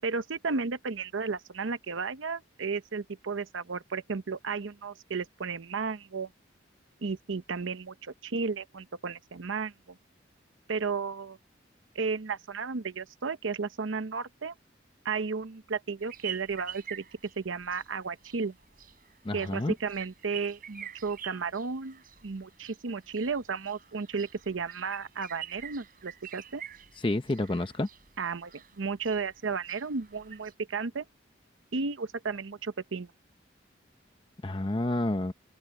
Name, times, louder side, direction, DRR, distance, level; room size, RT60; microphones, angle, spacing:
voice 1, 0.0-6.3 7.0-10.0 10.7-11.4 11.9-14.5 15.0-17.0 17.4-18.5 19.3-26.6 28.2-28.5 28.8-31.0 31.7-33.1, right 4 dB, 85° right, 0.7 m, -33 dB
sound 1, 16.0-30.5, right 9 dB, 45° right, 5.8 m, -47 dB
voice 2, 19.3-19.7 27.0-27.9 34.4-35.3, left 1 dB, 25° left, 0.7 m, -29 dB
open air
head